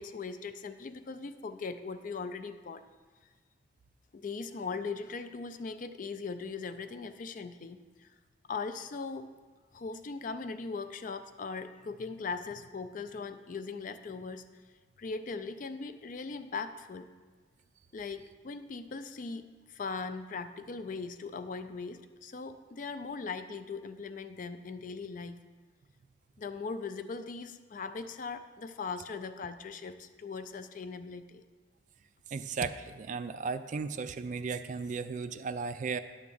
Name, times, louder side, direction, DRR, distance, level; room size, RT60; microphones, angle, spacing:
voice 1, 0.0-2.8 4.1-8.1 8.5-9.3 9.7-14.4 15.0-17.1 17.9-25.4 26.4-31.4, left 4 dB, 45° left, 10 dB, 0.4 m, -39 dB
voice 2, 32.3-36.0, right 5 dB, 40° right, 11 dB, 0.3 m, -35 dB
10.0 x 3.6 x 7.0 m, 1.4 s
head